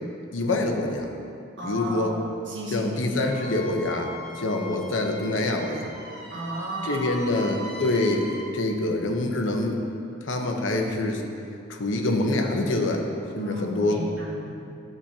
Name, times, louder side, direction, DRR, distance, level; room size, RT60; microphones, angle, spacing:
voice 1, 0.3-1.1 1.6-2.1 2.7-5.9 6.8-8.3 8.5-9.8 10.2-11.2 11.7-13.1 13.3-14.0, left 2 dB, 80° left, 3 dB, 0.9 m, -25 dB
voice 2, 1.6-2.2 2.5-2.9 3.2-3.4 6.3-7.3 13.4-14.6, right 1 dB, 70° right, -3 dB, 1.5 m, -34 dB
Wind instrument woodwind instrument, 3.2-8.5, left 1 dB, 5° left, 2.2 m, -41 dB
12.5 x 6.9 x 2.9 m, 2.6 s
head